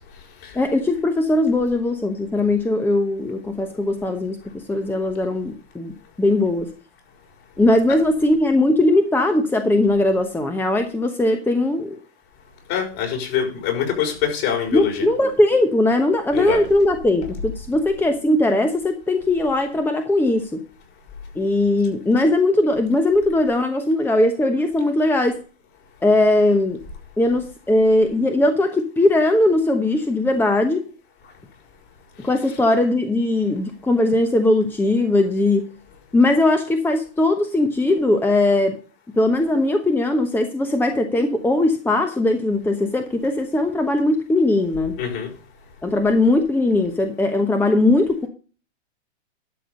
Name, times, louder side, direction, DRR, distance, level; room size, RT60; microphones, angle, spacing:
voice 1, 0.5-6.7 7.6-12.0 14.7-20.6 21.3-25.4 26.0-26.8 27.2-30.8 32.2-35.6 36.1-38.8 39.2-44.9 45.8-48.3, left 2 dB, 5° left, 6 dB, 1.0 m, -19 dB
voice 2, 12.7-14.9 16.3-16.6 45.0-45.3, left 8 dB, 50° left, 1 dB, 5.8 m, -24 dB
12.0 x 6.1 x 5.3 m, 0.37 s
hypercardioid pair, 120°, 35 cm